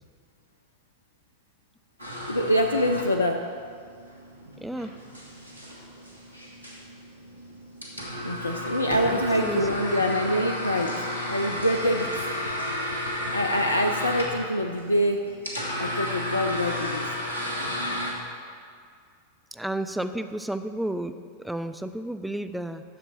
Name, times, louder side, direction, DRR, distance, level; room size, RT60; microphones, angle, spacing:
sound 1, 2.0-18.1, left 1 dB, 80° right, 1.5 m, -33 dB
voice 1, 2.3-3.4 8.2-12.2 12.7-12.8 13.3-15.3 15.8-17.1, equal, 80° left, 4 dB, 0.4 m, -25 dB
voice 2, 4.6-4.9 9.1-9.6 19.5-21.1 21.4-22.8, right 1 dB, 5° right, 9 dB, 0.4 m, -32 dB
10.0 x 6.8 x 4.2 m, 2.2 s
figure-of-eight pair, 90°, 0 cm